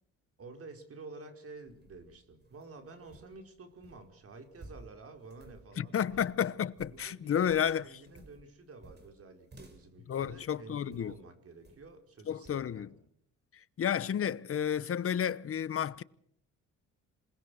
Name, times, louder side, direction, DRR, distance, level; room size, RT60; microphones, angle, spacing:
voice 1, 0.4-6.3 6.8-12.8, right 3 dB, 50° right, 5.0 m, -50 dB
sound 1, 1.5-11.2 11.6-12.0 12.4-12.7, right 2 dB, 35° right, 6.2 m, -56 dB
voice 2, 5.8-7.9 10.1-11.1 12.3-12.9 13.8-16.0, left 8 dB, 45° left, 0.9 m, -31 dB
27.0 x 20.0 x 6.5 m
cardioid pair, 90°, 30 cm